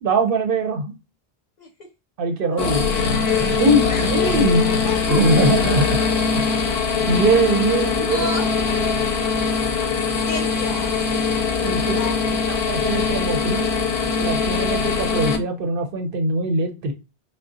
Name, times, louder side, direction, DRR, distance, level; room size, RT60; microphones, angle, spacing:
voice 1, 0.0-0.9 2.2-2.9 3.4-4.8 5.1-6.0 6.4-6.6 7.1-8.4 11.6-12.0 12.5-13.7 14.2-16.9, right 2 dB, 65° right, 4 dB, 0.7 m, -21 dB
sound 1, 2.6-15.4, left 5 dB, 85° left, 0.9 m, -22 dB
voice 2, 3.9-5.2 8.1-8.4 8.8-8.9 9.9-10.9 11.9-12.4, left 2 dB, 50° left, 3 dB, 0.6 m, -31 dB
3.6 x 2.0 x 2.5 m, 0.27 s
omnidirectional pair, 1.0 m